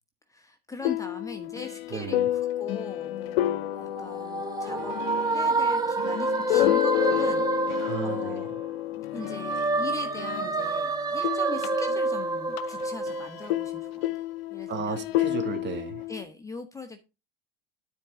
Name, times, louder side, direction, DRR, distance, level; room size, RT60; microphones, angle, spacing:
voice 1, 0.3-4.9 5.3-8.5 8.9-14.3 14.5-15.0 16.1-17.1, left 3 dB, 10° left, 1.1 m, -41 dB
sound 1, 0.8-10.8 11.1-16.2, left 14 dB, 75° left, 0.8 m, -30 dB
voice 2, 1.9-2.3 7.8-8.4 14.7-16.1, right 7 dB, 35° right, 2.3 m, -34 dB
sound 2, 3.8-8.8 9.1-13.9, right 3 dB, 10° right, 1.2 m, -28 dB
12.5 x 4.6 x 3.8 m
hypercardioid pair, 105°, 30 cm